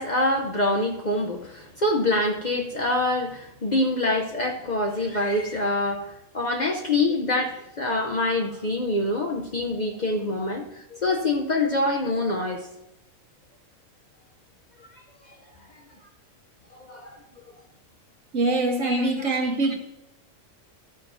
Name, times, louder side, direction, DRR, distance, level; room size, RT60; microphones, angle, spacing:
voice 1, 0.0-12.7 16.7-17.2 18.8-19.1, left 2 dB, 45° left, 1 dB, 0.7 m, -25 dB
voice 2, 18.3-19.7, right 2 dB, 65° right, 2 dB, 1.6 m, -23 dB
12.0 x 8.9 x 2.6 m, 0.85 s
omnidirectional pair, 1.4 m